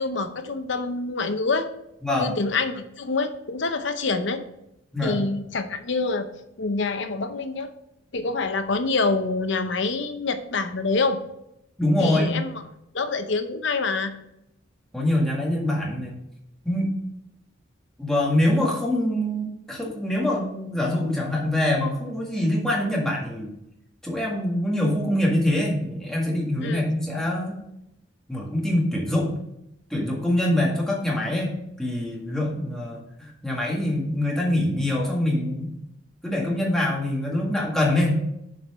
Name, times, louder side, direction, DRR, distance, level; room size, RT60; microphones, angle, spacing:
voice 1, 0.0-1.7 2.2-4.4 5.0-6.3 6.6-7.7 8.1-11.2 12.0-12.6 12.9-14.1 26.6-26.9, left 3 dB, 65° left, 8 dB, 0.8 m, -26 dB
voice 2, 11.8-12.3 14.9-16.1 16.6-16.9 18.0-23.5 24.0-27.6 28.3-29.4 29.9-35.7 36.2-38.2, left 1 dB, 5° left, -3 dB, 1.8 m, -24 dB
7.0 x 4.6 x 5.6 m, 0.82 s
head